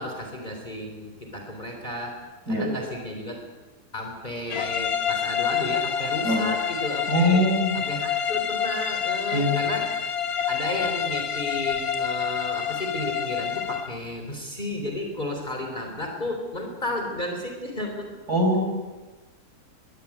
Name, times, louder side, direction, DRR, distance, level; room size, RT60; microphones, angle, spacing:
voice 1, 0.0-2.2 2.5-3.4 3.9-7.4 7.7-9.9 10.5-18.2, left 1 dB, 30° left, 2 dB, 3.8 m, -33 dB
sound 1, 4.5-14.0, left 8 dB, 70° left, 1.6 m, -27 dB
voice 2, 7.1-7.8 9.3-9.6 18.3-18.7, equal, 80° right, 3 dB, 6.2 m, -22 dB
23.5 x 22.5 x 8.5 m, 1.2 s
omnidirectional pair, 1.6 m